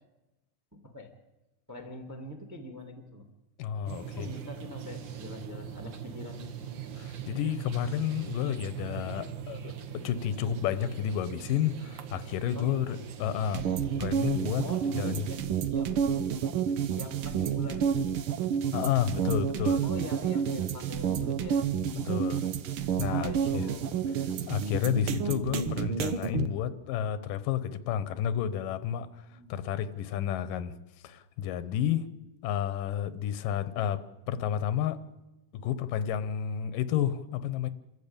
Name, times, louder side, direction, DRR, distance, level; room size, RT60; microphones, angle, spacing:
voice 1, 0.7-1.1 1.7-3.3 4.2-6.5 12.5-13.0 14.6-16.4 16.9-18.2 19.8-21.7 23.1-24.5 29.3-29.6, left 1 dB, 5° right, 6 dB, 1.4 m, -44 dB
voice 2, 3.6-4.3 7.0-9.7 10.0-13.6 14.0-15.3 18.7-19.8 21.9-22.5 23.0-23.7 24.5-30.7 31.0-32.1 32.4-35.0 35.5-37.7, left 10 dB, 85° left, 14 dB, 2.6 m, -31 dB
sound 1, 3.9-15.4, right 8 dB, 70° right, 1.1 m, -41 dB
sound 2, 13.5-26.5, right 7 dB, 90° right, 1.1 m, -30 dB
27.0 x 13.5 x 8.8 m, 1.0 s
omnidirectional pair, 3.8 m